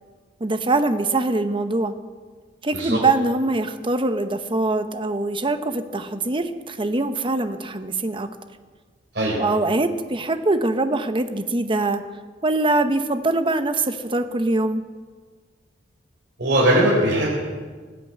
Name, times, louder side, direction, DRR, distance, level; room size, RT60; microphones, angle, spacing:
voice 1, 0.4-1.9 2.6-8.3 9.4-12.0 12.4-14.8, right 2 dB, 30° right, 9 dB, 0.9 m, -23 dB
voice 2, 16.4-17.3, right 1 dB, 65° right, -6 dB, 4.4 m, -19 dB
19.0 x 8.4 x 8.6 m, 1.5 s
head